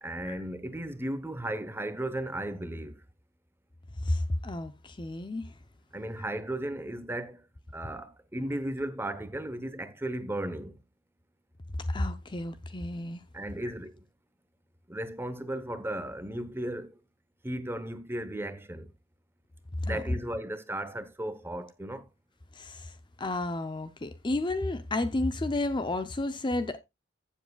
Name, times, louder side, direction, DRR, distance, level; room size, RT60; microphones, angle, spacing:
voice 1, 0.0-3.0 5.9-7.4 7.7-10.8 13.3-14.0 14.9-16.9 17.4-18.9 19.8-22.1, right 1 dB, 10° right, 0.9 m, -35 dB
voice 2, 4.0-5.5 11.9-13.2 19.8-20.2 22.5-26.8, left 2 dB, 25° left, 0.6 m, -31 dB
15.0 x 7.3 x 2.3 m
head